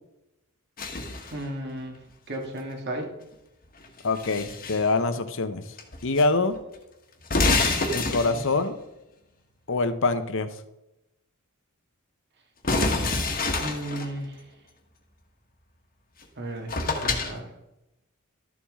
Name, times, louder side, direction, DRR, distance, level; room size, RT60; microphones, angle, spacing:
sound 1, 0.8-1.4 3.8-4.9 5.8-6.3 6.5-6.6 7.2-8.6 12.6-14.1 16.2-16.3 16.7-17.3, left 3 dB, 40° left, 1.4 m, -27 dB
voice 1, 1.3-2.0 2.3-3.1 7.8-8.6 13.6-14.4 16.4-17.5, right 1 dB, 50° right, 2 dB, 1.9 m, -35 dB
voice 2, 4.0-5.6 6.0-6.5 7.9-8.8 9.7-10.5, left 3 dB, 65° left, 10 dB, 0.8 m, -24 dB
12.5 x 7.1 x 3.7 m, 0.93 s
head